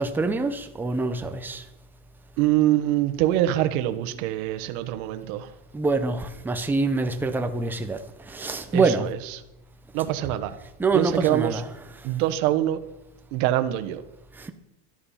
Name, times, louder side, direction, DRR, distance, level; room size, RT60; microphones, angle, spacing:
voice 1, 0.0-1.6 5.7-9.1 10.8-11.6 14.4-14.5, right 3 dB, 5° right, 0.5 m, -25 dB
voice 2, 2.4-5.5 8.7-9.4 9.9-10.5 10.9-11.6 12.0-12.8 13.3-14.0, right 13 dB, 60° right, 1.2 m, -24 dB
13.0 x 10.0 x 5.7 m
supercardioid pair, 160°, 46 cm